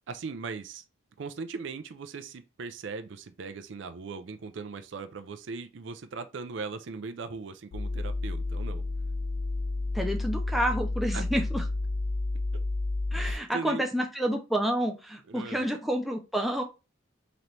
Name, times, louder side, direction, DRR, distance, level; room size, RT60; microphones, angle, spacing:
voice 1, 0.1-0.8 1.2-8.8 11.1-11.2 13.2-13.8 15.3-15.7, right 4 dB, 65° right, 0.4 m, -39 dB
sound 1, 7.7-13.3, left 2 dB, 80° left, 0.5 m, -31 dB
voice 2, 9.9-11.6 13.1-16.6, equal, ahead, 0.5 m, -29 dB
3.9 x 3.0 x 3.2 m
head